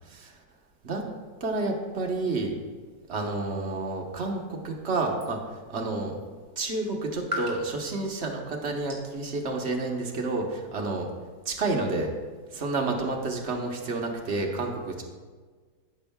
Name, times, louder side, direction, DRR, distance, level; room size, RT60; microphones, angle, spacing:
voice 1, 1.4-2.5 3.1-5.4 5.7-6.1 6.6-11.1 11.4-12.1 12.5-15.0, right 3 dB, 45° right, 1 dB, 1.0 m, -30 dB
sound 1, 3.7-10.0, equal, 10° right, 2.4 m, -43 dB
14.5 x 6.3 x 2.2 m, 1.5 s
omnidirectional pair, 2.0 m